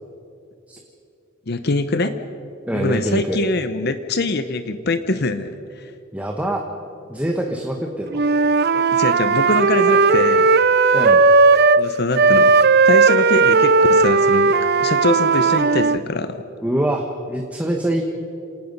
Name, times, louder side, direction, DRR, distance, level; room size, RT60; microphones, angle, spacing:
voice 1, 1.5-2.2 2.7-5.9 8.7-10.5 11.8-12.5 12.9-14.5 14.8-16.4, left 2 dB, 55° left, 10 dB, 0.9 m, -23 dB
voice 2, 2.7-3.4 6.1-6.6 7.1-8.2 10.9-11.2 16.6-18.0, right 1 dB, 5° right, 2 dB, 1.3 m, -24 dB
Wind instrument woodwind instrument, 8.1-11.8 12.1-16.0, right 4 dB, 55° right, 0.6 m, -15 dB
27.5 x 18.5 x 5.5 m, 2.7 s
head